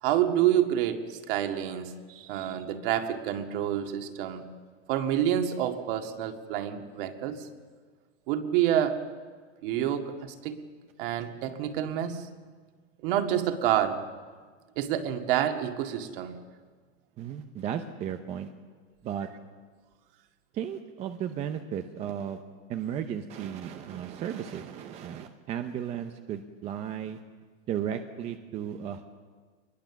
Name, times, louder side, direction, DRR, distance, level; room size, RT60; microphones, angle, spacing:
voice 1, 0.0-4.4 4.9-7.5 8.3-9.0 9.6-10.6 11.0-12.2 13.0-14.0 14.8-16.3, right 11 dB, 45° right, 6 dB, 2.0 m, -28 dB
voice 2, 17.2-18.5 19.0-19.3 20.5-22.4 22.7-27.2 27.7-29.1, right 9 dB, 15° right, 7 dB, 0.6 m, -34 dB
24.0 x 21.0 x 7.1 m, 1.5 s
supercardioid pair, 160°, 38 cm